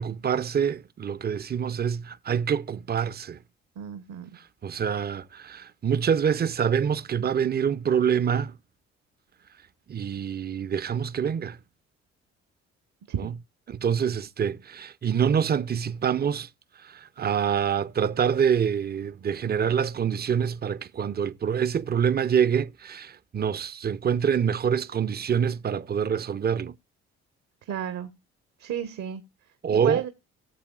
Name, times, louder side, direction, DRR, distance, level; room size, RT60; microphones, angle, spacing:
voice 1, 0.0-3.4 4.3-8.6 9.9-11.6 13.2-13.3 13.7-16.5 16.8-26.7 29.6-30.0, right 7 dB, 30° right, 0.7 m, -26 dB
voice 2, 3.8-4.3 13.1-13.3 27.6-28.1 28.6-29.2 29.7-30.1, right 9 dB, 60° right, 1.3 m, -32 dB
17.5 x 7.2 x 2.4 m
hypercardioid pair, 50°, 31 cm